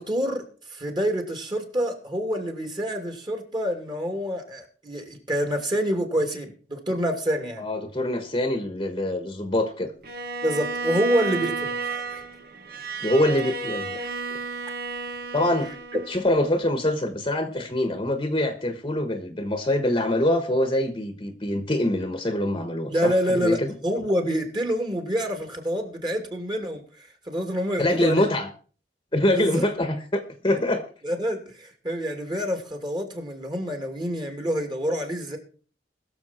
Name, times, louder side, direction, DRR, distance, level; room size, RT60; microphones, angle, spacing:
voice 1, 0.0-7.6 10.4-12.2 22.9-28.3 29.3-29.7 30.5-30.6 31.0-35.4, equal, 25° right, 4 dB, 2.7 m, -27 dB
voice 2, 7.6-9.9 13.0-14.0 14.3-14.4 15.3-15.7 16.1-23.7 27.8-28.5 29.1-30.8, left 1 dB, 25° left, 8 dB, 1.2 m, -24 dB
Bowed string instrument, 10.0-16.3, right 4 dB, 60° right, 1.5 m, -32 dB
21.0 x 7.1 x 4.4 m, 0.40 s
head